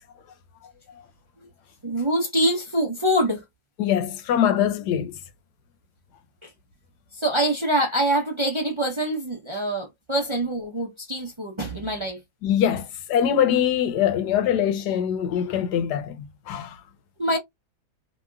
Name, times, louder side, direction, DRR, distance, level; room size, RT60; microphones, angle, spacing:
voice 1, 1.8-3.4 6.4-6.5 7.1-12.2 17.2-17.4, right 1 dB, 30° right, 0.5 m, -24 dB
voice 2, 3.8-5.1 12.4-16.8, left 9 dB, 90° left, 1.3 m, -23 dB
3.0 x 2.8 x 2.3 m
omnidirectional pair, 1.7 m